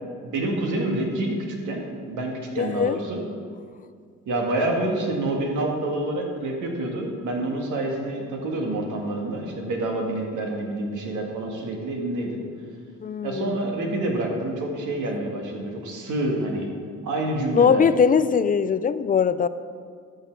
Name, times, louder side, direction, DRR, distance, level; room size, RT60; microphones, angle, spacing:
voice 1, 0.2-1.4 1.7-3.2 4.3-12.4 13.2-16.7 17.0-17.8, right 1 dB, 80° right, 1 dB, 1.8 m, -27 dB
voice 2, 2.6-3.0 13.0-13.6 17.5-19.5, left 6 dB, 30° left, 13 dB, 0.4 m, -21 dB
13.0 x 5.7 x 4.6 m, 2.1 s
cardioid pair, 90°, 30 cm